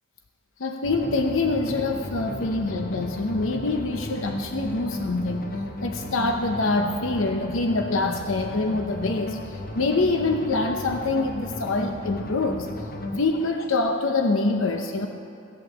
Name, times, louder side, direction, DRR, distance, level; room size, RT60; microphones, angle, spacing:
voice 1, 0.6-5.5 5.8-12.7 13.1-15.1, left 3 dB, 80° left, 4 dB, 0.8 m, -25 dB
sound 1, 0.8-13.2, left 1 dB, 50° left, 1.2 m, -35 dB
16.0 x 8.7 x 7.2 m, 2.8 s
head